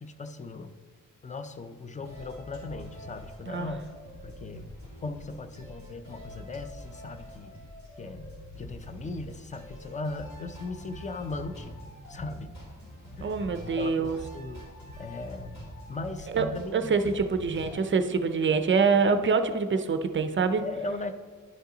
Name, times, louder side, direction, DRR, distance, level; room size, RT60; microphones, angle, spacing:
voice 1, 0.0-0.8 1.2-3.8 4.2-4.7 5.0-7.5 8.0-11.8 12.1-12.5 13.2-14.7 15.0-17.2 20.6-21.1, left 3 dB, 25° left, 9 dB, 0.4 m, -38 dB
sound 1, 2.0-17.8, equal, 55° left, 2.6 m, -45 dB
voice 2, 13.2-14.2 16.3-16.5 16.7-20.6, right 5 dB, 35° right, 8 dB, 0.4 m, -25 dB
10.5 x 5.4 x 3.8 m, 1.5 s
wide cardioid pair, 160°, 33 cm